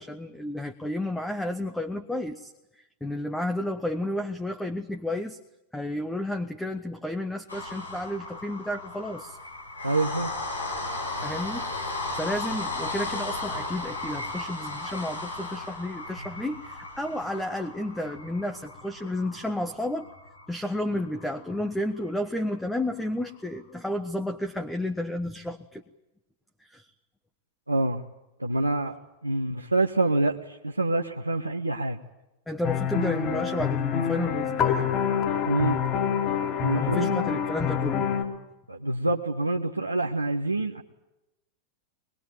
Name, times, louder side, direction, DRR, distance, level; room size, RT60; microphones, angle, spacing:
voice 1, 0.0-2.5 3.0-5.4 5.7-9.4 11.2-20.1 20.5-25.8 26.6-26.8 32.5-34.9 36.7-38.1, left 1 dB, 5° left, 6 dB, 1.4 m, -32 dB
sound 1, 7.5-21.6 22.0-22.1 22.4-22.5, left 2 dB, 85° left, 5.5 m, -35 dB
voice 2, 9.8-10.3 27.7-28.1 28.4-29.0 29.2-32.0 35.4-35.8 36.6-37.1 38.7-40.8, right 2 dB, 85° right, 2 dB, 1.3 m, -26 dB
sound 2, 32.6-38.2, left 8 dB, 35° left, 5.6 m, -26 dB
23.5 x 22.0 x 9.3 m, 0.94 s
figure-of-eight pair, 90°, 0 cm